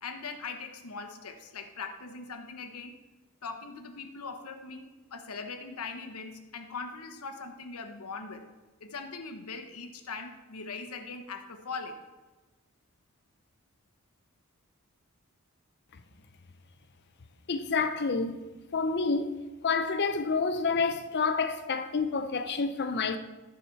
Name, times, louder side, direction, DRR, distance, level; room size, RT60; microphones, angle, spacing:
voice 1, 0.0-3.0 3.4-8.5 8.8-12.1, left 4 dB, 85° left, 1.0 m, -41 dB
voice 2, 17.5-23.2, left 4 dB, 50° left, 0.6 m, -29 dB
15.0 x 5.0 x 4.6 m
head